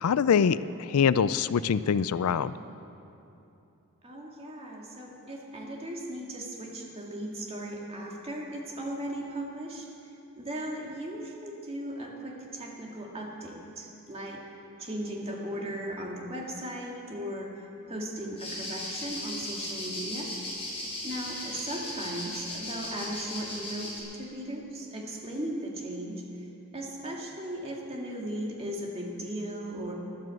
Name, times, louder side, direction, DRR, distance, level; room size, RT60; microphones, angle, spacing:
voice 1, 0.0-2.5, left 7 dB, 85° left, 16 dB, 0.4 m, -24 dB
voice 2, 4.0-9.9 10.4-14.4 14.8-20.3 21.0-26.5 26.7-29.9, right 1 dB, 25° right, -1 dB, 2.0 m, -37 dB
sound 1, 18.4-24.0, left 1 dB, 25° left, 4.2 m, -37 dB
12.5 x 11.5 x 7.7 m, 2.8 s
head